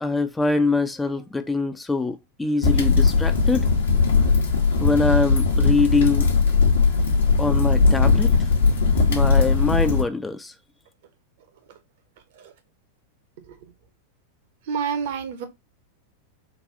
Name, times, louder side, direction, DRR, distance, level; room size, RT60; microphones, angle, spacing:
voice 1, 0.0-3.7 4.8-6.3 7.4-8.5 9.1-10.5, left 3 dB, 10° left, 0.3 m, -24 dB
sound 1, 2.6-10.0, left 4 dB, 65° left, 0.9 m, -19 dB
voice 2, 14.6-15.5, right 7 dB, 55° right, 0.7 m, -29 dB
4.0 x 2.3 x 2.6 m
figure-of-eight pair, 90°, 0 cm